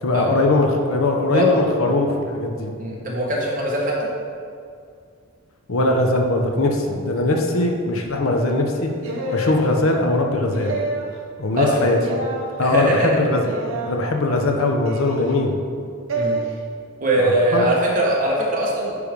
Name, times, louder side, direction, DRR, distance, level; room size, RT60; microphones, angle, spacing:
voice 1, 0.0-2.7 5.7-8.9 9.3-10.8 11.4-12.0 12.6-13.5 13.9-15.6 17.2-17.7, left 2 dB, 80° left, 2 dB, 0.8 m, -20 dB
voice 2, 1.3-1.6 2.8-4.1 11.6-11.9 12.6-13.1 16.1-16.4 17.0-18.9, right 1 dB, 40° right, -3 dB, 1.4 m, -21 dB
sound 1, 9.0-9.6 10.5-11.1 12.0-12.5 13.4-14.0 14.9-15.3 16.1-16.4, right 1 dB, 70° right, 0.9 m, -27 dB
9.5 x 3.4 x 5.2 m, 2.2 s
head